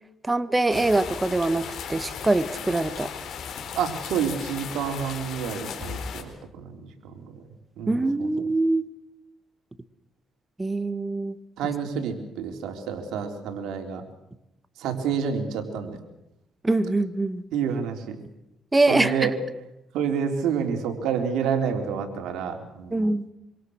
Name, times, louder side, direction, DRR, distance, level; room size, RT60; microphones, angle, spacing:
voice 1, 0.2-3.1 7.9-8.9 10.6-11.3 16.6-17.4 18.7-19.3 22.9-23.3, right 2 dB, 15° right, 11 dB, 1.6 m, -23 dB
sound 1, 0.7-6.2, left 7 dB, 65° left, 4.3 m, -36 dB
voice 2, 3.7-6.3 6.6-6.9 7.1-7.3 7.8-8.3 11.6-14.0 14.8-16.0 17.5-18.2 18.9-19.3 19.9-23.0, right 7 dB, 90° right, 5 dB, 3.8 m, -28 dB
26.0 x 26.0 x 6.5 m, 0.86 s
cardioid pair, 90°, 0 cm